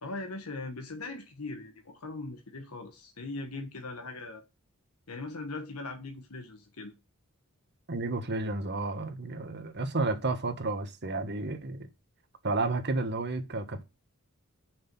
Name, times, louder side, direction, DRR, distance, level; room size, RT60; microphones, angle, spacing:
voice 1, 0.0-4.4 5.1-7.0, left 3 dB, 85° left, 1.3 m, -40 dB
voice 2, 7.9-11.9 12.4-13.8, right 3 dB, 50° right, 1.4 m, -31 dB
6.3 x 6.1 x 6.9 m
head